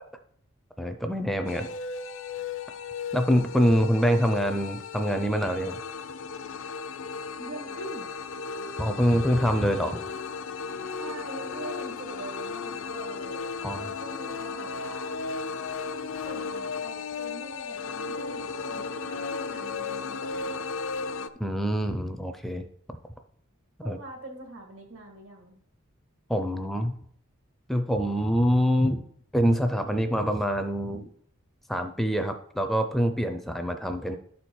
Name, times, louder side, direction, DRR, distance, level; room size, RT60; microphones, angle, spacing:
voice 1, 0.8-1.7 3.1-5.8 8.8-10.1 13.6-13.9 21.4-22.6 23.8-24.0 26.3-26.9 27.7-29.0 29.3-31.0 31.7-34.2, equal, ahead, 7 dB, 0.4 m, -25 dB
sound 1, 1.5-21.3, left 5 dB, 65° left, 0.5 m, -35 dB
voice 2, 7.4-8.1 10.8-15.2 16.2-20.7 23.8-25.6, right 2 dB, 75° right, 3 dB, 1.8 m, -43 dB
11.5 x 4.3 x 4.6 m, 0.65 s
head